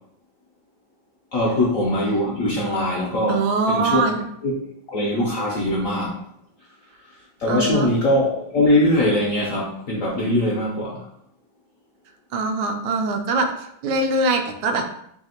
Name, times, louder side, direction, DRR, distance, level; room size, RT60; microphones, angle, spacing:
voice 1, 1.3-4.0 4.4-4.5 4.9-6.2 7.4-11.0, left 1 dB, 65° left, -4 dB, 0.8 m, -21 dB
voice 2, 3.3-4.2 7.5-7.9 12.3-13.5 13.8-14.8, right 3 dB, 80° right, 5 dB, 1.3 m, -22 dB
3.4 x 2.8 x 4.2 m, 0.74 s
omnidirectional pair, 2.1 m